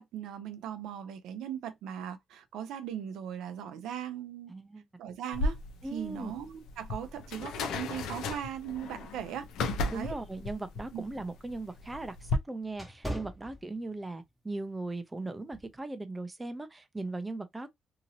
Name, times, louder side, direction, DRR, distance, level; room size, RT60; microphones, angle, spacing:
voice 1, 0.0-4.5 5.0-5.6 5.9-9.5 9.9-10.2 10.9-11.0, right 9 dB, 85° right, 0.5 m, -39 dB
voice 2, 4.5-4.8 5.8-6.3 9.9-17.7, right 2 dB, 15° right, 0.6 m, -38 dB
sound 1, 5.3-12.4, left 3 dB, 85° left, 0.6 m, -35 dB
sound 2, 10.6-14.2 14.7-14.9 15.5-15.8, equal, 5° left, 0.9 m, -42 dB
2.9 x 2.7 x 2.7 m
cardioid pair, 90°, 0 cm